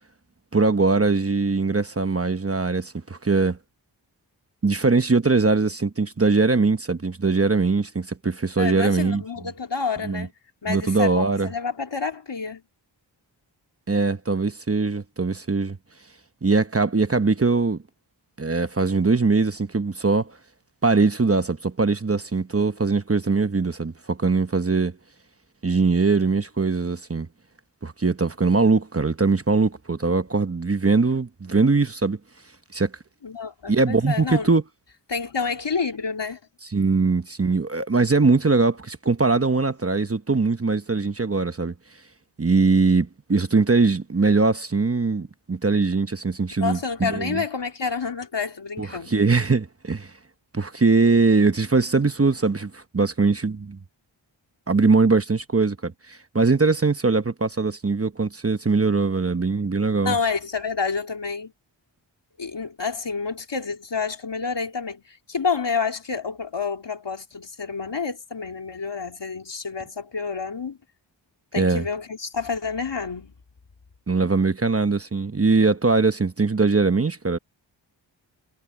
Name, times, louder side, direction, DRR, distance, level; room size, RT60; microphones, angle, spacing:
voice 1, 0.5-3.6 4.6-9.2 10.0-10.3 10.7-11.5 13.9-15.8 16.4-17.8 18.4-20.4 20.8-25.0 25.6-27.3 27.8-32.2 32.7-32.9 33.7-34.6 36.7-41.7 42.4-47.4 48.8-50.1 50.5-53.8 54.7-60.2 71.6-71.9 74.1-77.4, right 4 dB, 30° right, 1.0 m, -21 dB
voice 2, 8.6-10.3 10.6-12.6 33.2-34.5 35.1-36.4 46.6-49.1 60.0-61.5 62.4-70.8 71.5-73.3, left 5 dB, 65° left, 3.3 m, -29 dB
wide cardioid pair, 65°, 46 cm